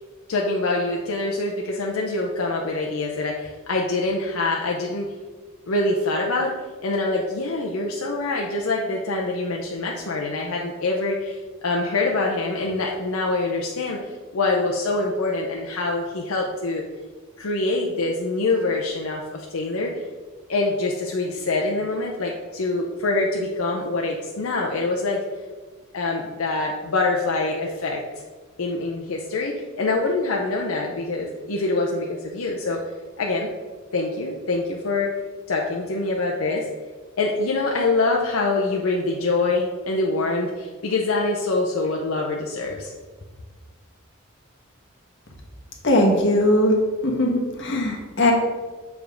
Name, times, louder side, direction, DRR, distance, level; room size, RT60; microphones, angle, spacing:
voice 1, 0.3-5.1 5.7-6.6 6.8-16.8 17.4-20.0 20.5-25.2 25.9-28.0 28.6-32.9 33.2-33.5 33.9-35.2 35.5-36.7 37.2-42.9, left 2 dB, 80° left, -1 dB, 0.7 m, -25 dB
voice 2, 45.8-46.8 47.0-48.3, left 1 dB, 60° left, 1 dB, 1.2 m, -19 dB
7.1 x 3.5 x 5.0 m, 1.4 s
head